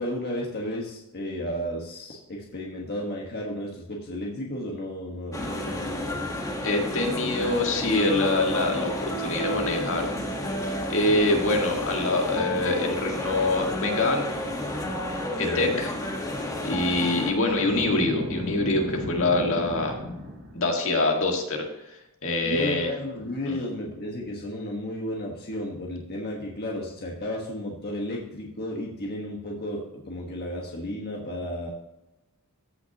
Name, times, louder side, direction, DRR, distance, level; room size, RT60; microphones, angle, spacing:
voice 1, 0.0-6.2 15.4-15.8 22.4-31.7, left 1 dB, 45° left, -2 dB, 1.4 m, -33 dB
sound 1, 5.3-17.3, left 1 dB, 15° left, 1.3 m, -31 dB
voice 2, 6.6-10.1 10.6-14.3 15.4-15.9 16.6-20.0 20.5-22.9 23.5-23.6, left 2 dB, 65° left, 2 dB, 1.7 m, -25 dB
Boom, 17.5-20.7, equal, 55° right, 3.3 m, -34 dB
14.5 x 5.9 x 2.9 m, 0.92 s
head